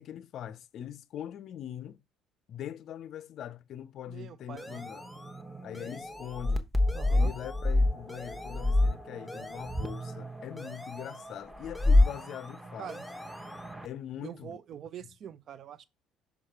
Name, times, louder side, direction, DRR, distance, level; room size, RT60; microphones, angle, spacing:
voice 1, 0.0-2.0 2.5-5.1 5.6-6.7 7.1-12.9 13.8-14.6, left 10 dB, 50° left, 0.5 m, -42 dB
voice 2, 4.1-4.9 6.9-7.3 12.8-13.0 14.2-15.8, right 9 dB, 45° right, 0.5 m, -44 dB
sound 1, 4.6-5.4 5.7-6.6 6.9-7.7 8.1-8.9 9.3-10.1 10.6-11.4 11.7-12.6 12.9-13.7, left 1 dB, 10° left, 0.7 m, -47 dB
sound 2, 4.7-13.9, left 2 dB, 10° right, 1.0 m, -29 dB
6.3 x 3.7 x 4.4 m
figure-of-eight pair, 55°, 0 cm